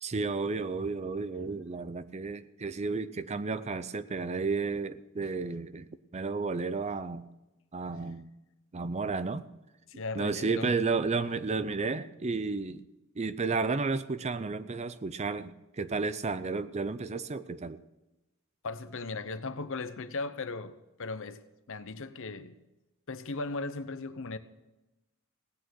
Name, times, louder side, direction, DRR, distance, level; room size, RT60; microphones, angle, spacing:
voice 1, 0.0-5.9 6.1-7.3 7.7-8.3 8.7-9.5 10.1-12.8 13.2-17.8, right 4 dB, 30° right, 14 dB, 0.5 m, -32 dB
voice 2, 9.9-10.7 18.6-22.6 23.1-24.4, left 3 dB, 60° left, 12 dB, 0.8 m, -37 dB
17.5 x 8.9 x 6.3 m, 0.99 s
head